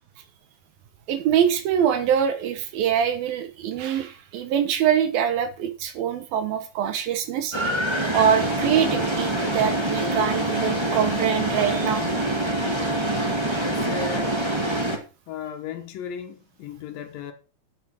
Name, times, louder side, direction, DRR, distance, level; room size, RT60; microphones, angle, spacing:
voice 1, 1.1-7.6 8.1-12.0, right 9 dB, 70° right, 2.9 m, -24 dB
sound 1, 7.5-15.0, right 1 dB, 15° right, 0.8 m, -25 dB
voice 2, 13.6-14.4 15.3-17.3, left 6 dB, 70° left, 2.7 m, -35 dB
9.3 x 6.7 x 6.2 m
omnidirectional pair, 4.6 m